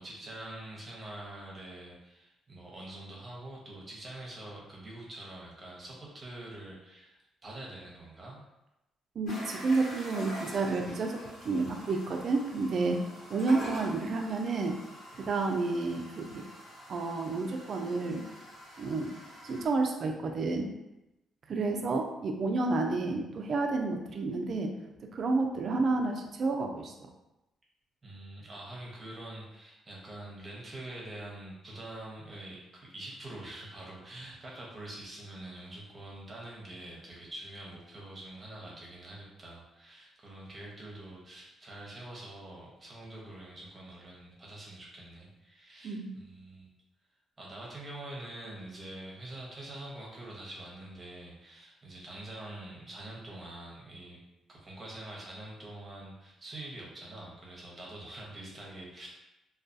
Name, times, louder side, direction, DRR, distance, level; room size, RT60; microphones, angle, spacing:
voice 1, 0.0-8.4 28.0-46.7 47.4-54.2 54.5-59.1, right 1 dB, 30° right, -4 dB, 0.8 m, -45 dB
voice 2, 9.2-11.1 11.4-13.0 13.3-14.8 15.1-16.4 16.9-18.2 18.8-19.1 19.4-20.7 21.5-24.7 25.1-26.9 45.8-46.1, right 3 dB, 55° right, 3 dB, 0.4 m, -30 dB
sound 1, 9.3-19.7, equal, 75° left, 1.1 m, -46 dB
2.3 x 2.3 x 2.6 m, 0.94 s
cardioid pair, 90°, 0 cm